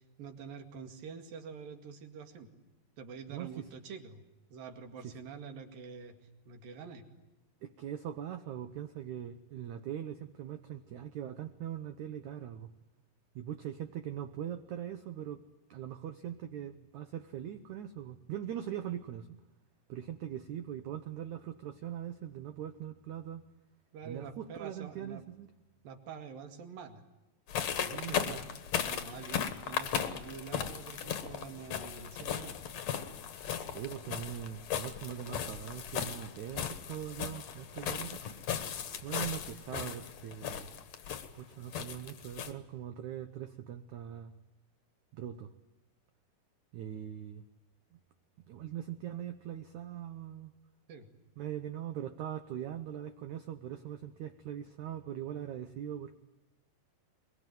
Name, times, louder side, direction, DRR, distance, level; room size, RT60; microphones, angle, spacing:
voice 1, 0.0-2.5 3.0-4.2 4.5-6.2 6.5-7.0 23.9-25.2 25.8-27.0 27.9-28.5 28.8-32.6 50.9-51.1, right 6 dB, 60° right, 6 dB, 3.7 m, -46 dB
voice 2, 3.3-3.7 5.0-5.1 7.6-12.7 13.4-15.4 15.7-19.3 19.9-23.4 24.0-25.5 27.7-28.4 33.7-38.2 39.0-40.7 41.3-44.3 45.1-45.5 46.7-47.4 47.9-48.0 48.5-50.5 51.4-56.2, right 10 dB, 85° right, 9 dB, 1.6 m, -41 dB
sound 1, 27.5-42.5, left 8 dB, 60° left, 1.9 m, -37 dB
23.0 x 22.5 x 9.2 m, 1.0 s
omnidirectional pair, 4.8 m